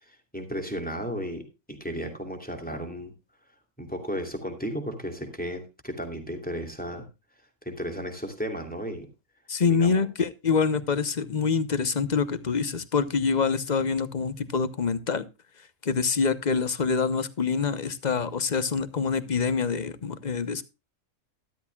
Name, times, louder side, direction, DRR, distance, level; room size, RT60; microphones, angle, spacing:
voice 1, 0.0-1.4 1.7-3.1 3.8-7.1 7.6-9.1 9.6-10.1, equal, 5° left, 4 dB, 2.8 m, -34 dB
voice 2, 9.5-15.3 15.8-20.6, left 5 dB, 35° left, 14 dB, 1.0 m, -26 dB
13.0 x 12.5 x 2.3 m, 0.27 s
omnidirectional pair, 1.3 m